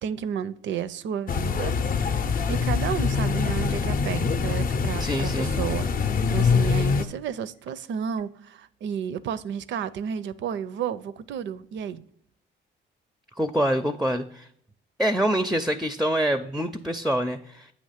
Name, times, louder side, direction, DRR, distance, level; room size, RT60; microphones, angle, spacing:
voice 1, 0.0-12.0, right 8 dB, 70° right, 0.5 m, -32 dB
sound 1, 1.3-7.0, left 5 dB, 45° left, 0.5 m, -24 dB
voice 2, 5.0-5.5 13.4-14.5 15.0-17.7, equal, ahead, 0.4 m, -25 dB
8.4 x 2.9 x 5.7 m
cardioid pair, 90°, 20 cm